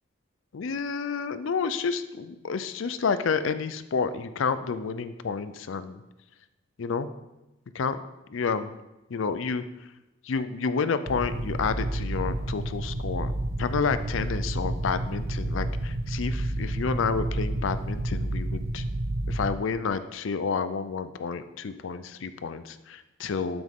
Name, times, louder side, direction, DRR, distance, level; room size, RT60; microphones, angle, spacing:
voice 1, 0.5-6.0 6.8-7.1 7.7-8.7 9.1-9.9 10.2-13.3 13.6-18.8 19.3-23.6, left 5 dB, 70° left, 12 dB, 0.5 m, -30 dB
sound 1, 11.1-19.5, right 1 dB, 75° right, 0.8 m, -30 dB
12.5 x 6.1 x 3.6 m, 0.98 s
head